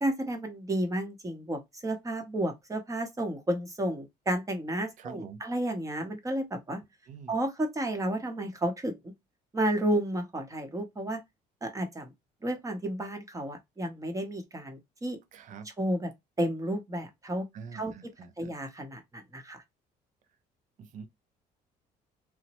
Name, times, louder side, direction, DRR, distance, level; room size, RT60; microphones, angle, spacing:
voice 1, 0.0-6.8 7.3-9.0 9.5-11.2 11.6-12.1 12.4-15.2 15.6-16.1 16.4-17.5 17.7-19.6, right 1 dB, 20° right, 0.8 m, -32 dB
voice 2, 5.0-5.4 7.1-7.3 15.3-15.7 17.5-18.5 20.8-21.1, right 6 dB, 50° right, 0.5 m, -45 dB
3.0 x 2.0 x 2.9 m
cardioid pair, 110°, 17 cm